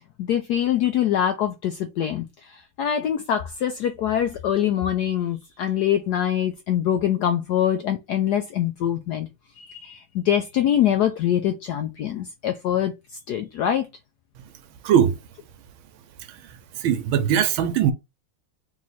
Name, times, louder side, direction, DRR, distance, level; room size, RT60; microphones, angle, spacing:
voice 1, 0.2-9.3 9.6-13.9, left 10 dB, 80° left, 0.9 m, -24 dB
voice 2, 14.8-15.2 16.3-16.4 16.7-17.9, right 9 dB, 80° right, 1.5 m, -20 dB
3.6 x 3.1 x 4.1 m
omnidirectional pair, 2.2 m